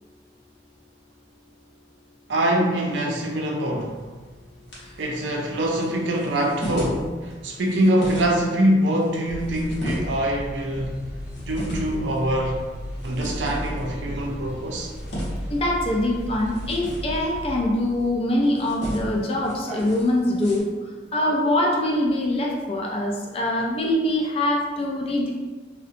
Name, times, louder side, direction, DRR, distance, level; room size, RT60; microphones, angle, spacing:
voice 1, 2.3-3.9 5.0-11.0 11.4-12.6 13.0-14.9, right 1 dB, 80° right, 0 dB, 0.5 m, -24 dB
sound 1, 3.8-20.6, equal, 70° left, 0.8 m, -37 dB
sound 2, 9.3-17.6, equal, 5° right, 0.8 m, -35 dB
voice 2, 15.5-20.7 21.1-25.3, left 1 dB, 30° left, -1 dB, 0.4 m, -23 dB
2.7 x 2.1 x 2.5 m, 1.3 s
head